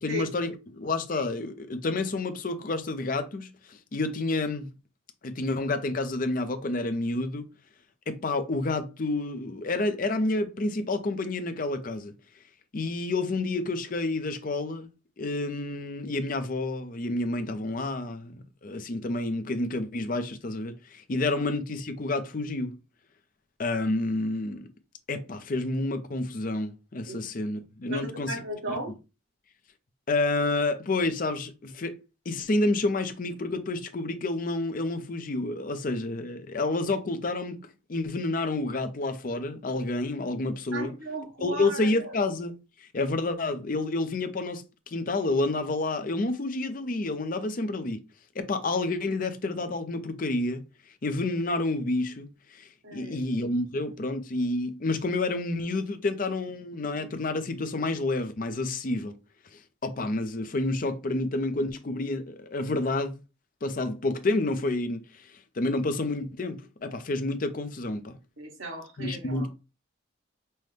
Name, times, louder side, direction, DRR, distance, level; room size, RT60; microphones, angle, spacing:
voice 1, 0.0-4.7 5.2-7.5 8.1-12.1 12.7-14.9 15.2-18.3 18.6-22.8 23.6-24.7 25.1-28.4 28.7-28.8 30.1-32.0 32.3-37.6 37.9-40.9 41.4-48.0 48.3-50.7 51.0-52.3 52.5-59.1 59.5-63.2 63.6-68.1 69.0-69.5, left 2 dB, 45° left, 0.5 m, -29 dB
voice 2, 27.9-29.0 40.7-42.1 52.8-53.3 68.4-69.5, right 1 dB, 70° right, 1.6 m, -36 dB
5.5 x 2.1 x 3.2 m
head